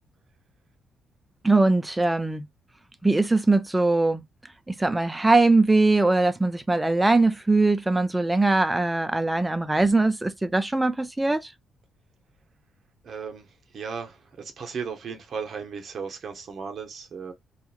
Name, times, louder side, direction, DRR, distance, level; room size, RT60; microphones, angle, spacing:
voice 1, 1.4-2.4 3.0-4.2 4.7-11.5, right 2 dB, 10° right, 0.3 m, -21 dB
voice 2, 13.0-13.5 13.7-17.3, right 6 dB, 50° right, 0.8 m, -35 dB
2.8 x 2.3 x 2.4 m
cardioid pair, 125°, 0 cm